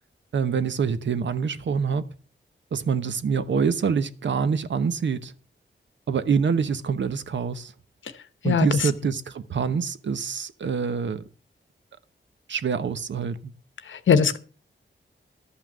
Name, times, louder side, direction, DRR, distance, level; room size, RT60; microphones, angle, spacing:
voice 1, 0.3-2.1 2.7-5.3 6.1-7.7 8.4-11.2 12.5-13.5, right 6 dB, 70° right, 1.0 m, -26 dB
voice 2, 8.4-8.9 13.9-14.4, left 6 dB, 85° left, 1.0 m, -21 dB
12.5 x 5.7 x 7.4 m
wide cardioid pair, 135°, 20 cm